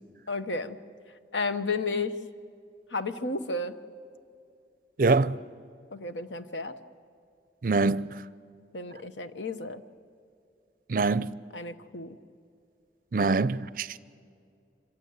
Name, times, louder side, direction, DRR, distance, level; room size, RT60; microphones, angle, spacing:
voice 1, 0.3-0.8 1.3-2.2 2.9-3.8 5.9-6.8 8.7-9.8 11.5-12.2, left 3 dB, 85° left, 1.0 m, -32 dB
voice 2, 5.0-5.4 7.6-8.2 10.9-11.3 13.1-14.0, right 3 dB, 50° right, 0.5 m, -24 dB
26.0 x 16.0 x 9.6 m
head